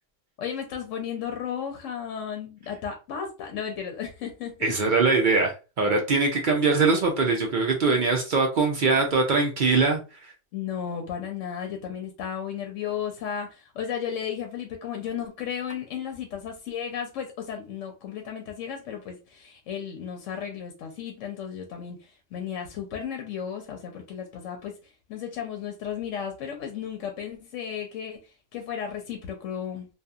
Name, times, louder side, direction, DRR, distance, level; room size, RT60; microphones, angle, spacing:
voice 1, 0.4-4.7 10.5-24.8 25.1-29.9, left 8 dB, 90° left, 0.9 m, -34 dB
voice 2, 4.6-10.3, right 4 dB, 55° right, 0.5 m, -22 dB
2.7 x 2.3 x 2.3 m
omnidirectional pair, 1.3 m